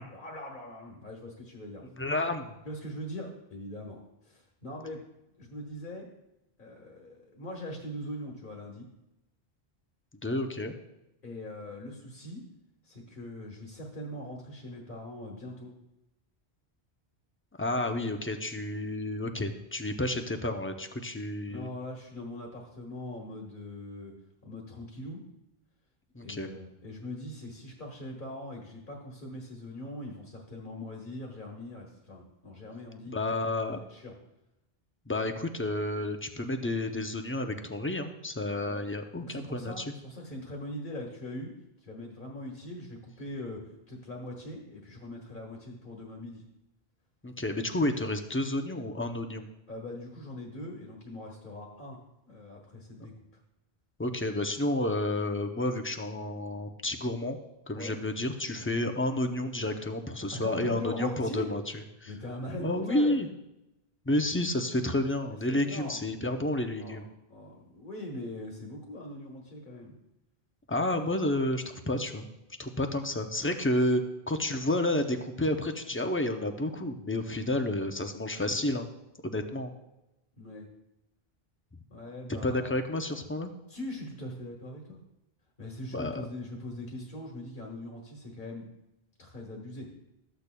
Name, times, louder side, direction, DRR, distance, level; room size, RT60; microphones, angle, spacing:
voice 1, 0.1-1.8 2.6-5.0 5.4-6.1 6.6-8.9 11.2-12.5 12.8-15.7 21.5-24.1 24.4-25.2 26.2-33.1 33.8-34.1 38.6-38.8 39.2-41.5 41.8-46.4 49.7-52.0 52.3-53.1 57.7-58.0 60.2-61.5 62.1-63.2 65.5-66.1 66.8-69.9 80.4-80.7 81.9-82.8 83.7-85.0 85.6-88.7 89.2-89.9, left 1 dB, 55° left, -1 dB, 1.6 m, -41 dB
voice 2, 2.0-2.5 10.2-10.7 17.6-21.7 26.1-26.5 33.1-33.8 35.1-39.9 47.2-49.5 53.0-53.1 54.0-57.4 57.7-62.1 62.6-63.3 64.1-67.1 70.7-72.3 72.6-78.9 79.2-79.7 82.3-83.5 85.9-86.3, left 1 dB, 20° left, 6 dB, 0.4 m, -30 dB
13.5 x 8.3 x 2.2 m, 0.92 s
omnidirectional pair, 1.0 m